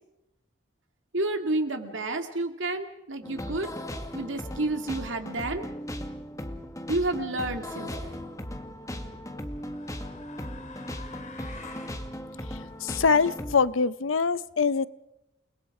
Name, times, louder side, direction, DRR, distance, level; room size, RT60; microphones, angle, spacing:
voice 1, 1.1-3.7 4.1-5.7 6.9-8.3, right 2 dB, 75° right, 6 dB, 2.2 m, -30 dB
sound 1, 3.2-13.6, left 1 dB, 15° left, 1.7 m, -37 dB
sound 2, 7.9-8.3 9.3-12.0, left 4 dB, 40° left, 2.9 m, -47 dB
voice 2, 12.8-14.9, left 5 dB, 85° left, 17 dB, 0.7 m, -23 dB
29.5 x 20.5 x 4.9 m, 0.88 s
head